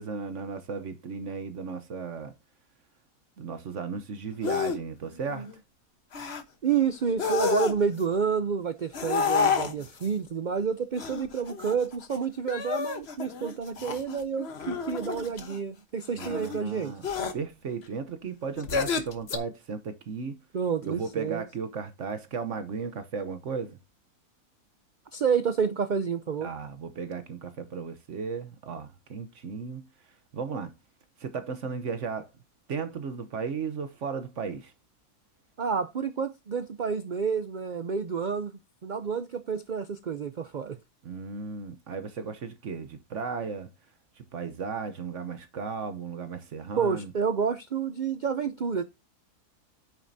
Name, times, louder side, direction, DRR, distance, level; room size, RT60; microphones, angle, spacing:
voice 1, 0.0-2.3 3.4-5.5 16.1-17.0 17.3-20.4 20.8-23.8 26.4-29.9 30.3-30.7 31.2-32.3 32.7-34.7 41.0-43.7 44.2-47.1, right 5 dB, 55° right, 1.1 m, -35 dB
sound 1, 4.4-4.8 5.2-5.5 6.1-6.4 7.1-8.0 8.9-10.1 11.0-12.2 12.5-15.6 16.2-16.6 17.0-17.3 18.6-19.4, left 6 dB, 45° left, 1.2 m, -30 dB
voice 2, 6.6-17.0 20.5-21.4 25.1-26.5 35.6-40.8 46.8-48.8, right 6 dB, 85° right, 0.4 m, -29 dB
9.2 x 7.3 x 2.6 m
omnidirectional pair, 1.6 m